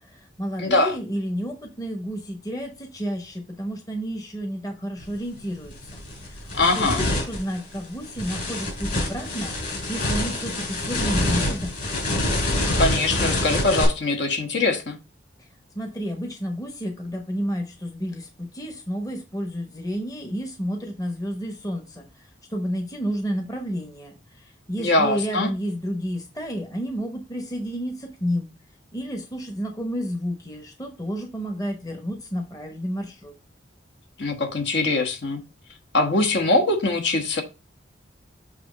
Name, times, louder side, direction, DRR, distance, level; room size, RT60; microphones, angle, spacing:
voice 1, 0.0-6.0 6.3-9.5 9.9-11.7 15.7-22.1 22.5-24.1 24.7-28.5 28.9-33.3, equal, 20° left, 0.9 m, -31 dB
voice 2, 0.6-1.0 6.5-7.0 12.8-15.0 24.8-25.5 34.2-35.4 35.9-37.4, left 2 dB, 60° left, 1.2 m, -22 dB
sound 1, 5.0-5.2 5.6-13.9, left 1 dB, 45° left, 3.1 m, -26 dB
7.6 x 2.9 x 5.0 m
head